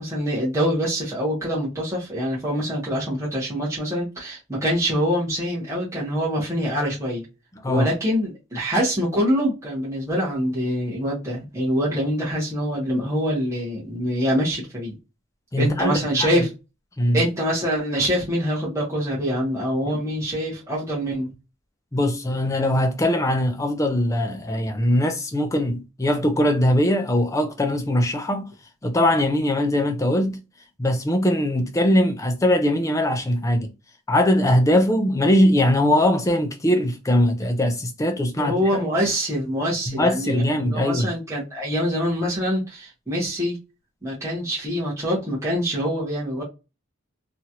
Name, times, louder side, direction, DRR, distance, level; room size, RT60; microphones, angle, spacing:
voice 1, 0.0-7.2 7.7-15.0 15.6-16.5 17.1-21.3 38.4-43.6 44.0-46.4, equal, 15° right, 1.1 m, -25 dB
voice 2, 15.5-16.4 17.0-17.2 19.9-20.0 21.9-28.5 28.8-30.4 30.8-33.7 34.1-38.8 39.9-41.1, left 1 dB, 15° left, 0.4 m, -21 dB
2.9 x 2.4 x 2.8 m
head